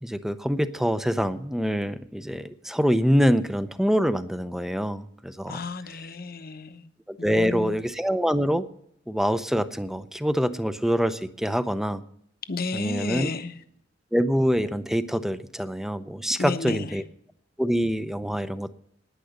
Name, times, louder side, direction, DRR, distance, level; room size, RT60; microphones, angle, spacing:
voice 1, 0.0-5.6 7.1-8.6 9.1-12.0 12.7-13.3 14.1-17.0 17.6-18.7, equal, ahead, 13 dB, 0.6 m, -25 dB
voice 2, 5.5-6.9 7.2-7.8 12.4-13.6 16.4-17.0, left 3 dB, 50° left, 10 dB, 1.0 m, -32 dB
10.0 x 9.8 x 8.1 m, 0.73 s
head